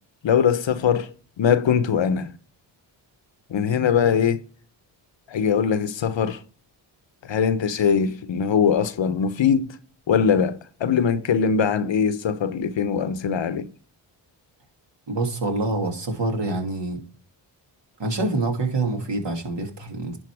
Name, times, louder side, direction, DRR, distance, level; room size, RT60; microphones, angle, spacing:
voice 1, 0.2-1.1 1.4-2.3 3.5-4.4 5.3-6.4 7.2-9.8 10.1-13.7, left 7 dB, 60° left, 0.9 m, -21 dB
voice 2, 15.1-17.0 18.0-20.2, right 2 dB, 60° right, 2.7 m, -26 dB
11.0 x 4.2 x 4.8 m
cardioid pair, 50°, 50 cm